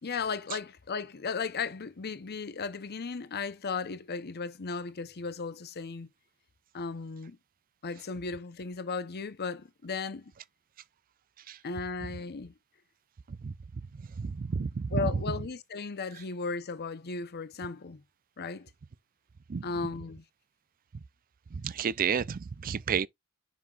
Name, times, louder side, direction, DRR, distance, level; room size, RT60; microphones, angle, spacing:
voice 1, 0.0-6.1 6.7-7.4 7.8-10.3 11.6-12.5 14.9-18.0 18.4-18.7 19.6-20.2, left 4 dB, 45° left, 0.7 m, -36 dB
voice 2, 14.2-15.0 19.5-19.6 21.5-23.1, right 6 dB, 40° right, 0.4 m, -31 dB
7.1 x 5.7 x 2.4 m
head